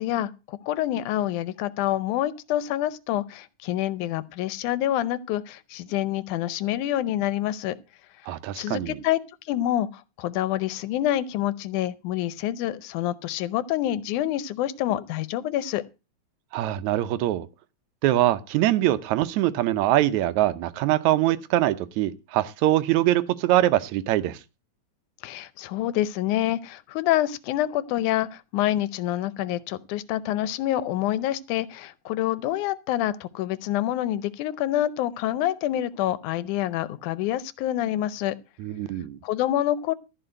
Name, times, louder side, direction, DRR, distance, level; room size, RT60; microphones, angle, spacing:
voice 1, 0.0-7.8 8.6-9.2 9.5-15.8 25.2-38.4 39.2-40.0, left 13 dB, 90° left, 2.2 m, -27 dB
voice 2, 8.3-9.0 16.5-17.5 18.0-24.4 38.6-39.2, right 14 dB, 75° right, 2.0 m, -23 dB
14.0 x 4.9 x 7.7 m
omnidirectional pair, 3.4 m